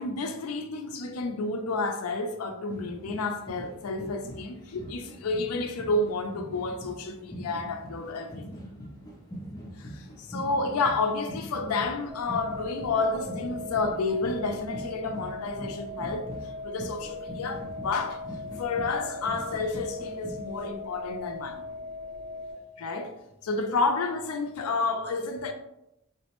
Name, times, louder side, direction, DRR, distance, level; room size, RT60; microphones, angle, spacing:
voice 1, 0.0-8.5 9.8-16.3 16.6-18.2 18.6-21.6 22.8-23.1 23.4-25.5, left 3 dB, 85° left, 0.4 m, -30 dB
sound 1, 2.7-20.4, equal, 15° left, 0.4 m, -43 dB
sound 2, 12.1-22.5, left 3 dB, 20° right, 0.8 m, -39 dB
3.4 x 2.0 x 2.9 m
head